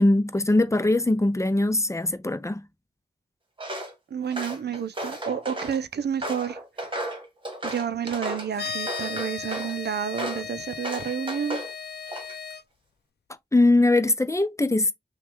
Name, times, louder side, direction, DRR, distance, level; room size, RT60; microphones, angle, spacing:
voice 1, 0.0-2.6 13.5-14.9, left 2 dB, 15° left, 0.6 m, -21 dB
Walk footsteps, 3.6-3.9 4.3-5.8 6.2-8.5 8.9-9.7 10.2-10.5 10.8-11.7 12.1-12.5, right 1 dB, 30° right, 1.4 m, -34 dB
voice 2, 4.1-6.6 7.6-11.7, right 8 dB, 75° right, 0.5 m, -30 dB
sound 1, 8.5-12.6, left 5 dB, 70° left, 0.5 m, -36 dB
5.9 x 2.3 x 3.7 m
wide cardioid pair, 120°, 17 cm